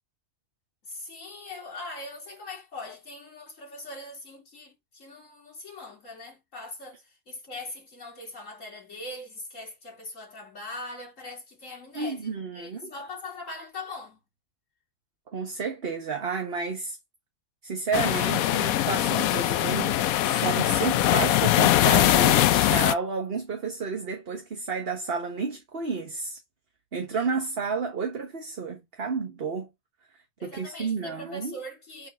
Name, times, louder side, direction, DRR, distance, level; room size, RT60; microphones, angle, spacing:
voice 1, 0.9-14.2 30.4-32.1, left 2 dB, 65° left, 3.3 m, -41 dB
voice 2, 11.9-12.9 15.3-17.0 17.6-20.0 20.2-26.4 26.9-29.7 30.4-31.5, right 4 dB, 45° right, 1.4 m, -31 dB
sound 1, 17.9-22.9, left 13 dB, 85° left, 1.0 m, -22 dB
8.6 x 4.5 x 2.6 m
omnidirectional pair, 1.4 m